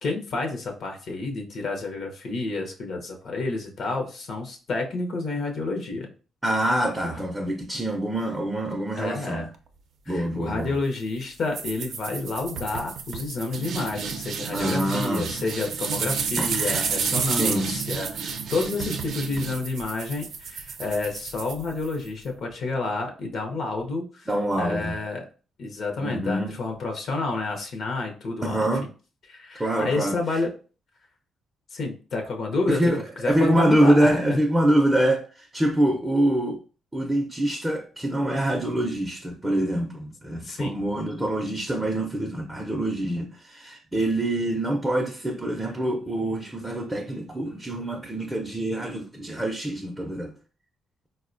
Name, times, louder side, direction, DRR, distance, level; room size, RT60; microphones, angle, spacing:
voice 1, 0.0-6.1 7.0-7.2 8.9-9.5 10.1-24.3 24.6-25.2 25.6-28.7 29.3-30.5 31.7-32.8 33.2-34.4 40.4-40.8, left 3 dB, 60° left, 0.6 m, -29 dB
voice 2, 6.4-9.5 10.1-10.7 14.5-15.3 16.4-16.9 17.2-17.7 24.3-25.0 26.0-26.5 28.4-28.9 29.6-30.2 32.7-36.6 36.9-50.4, right 1 dB, 10° right, 0.5 m, -25 dB
sound 1, 11.5-22.1, right 6 dB, 65° right, 0.4 m, -31 dB
4.0 x 2.1 x 2.5 m
cardioid pair, 90°, 0 cm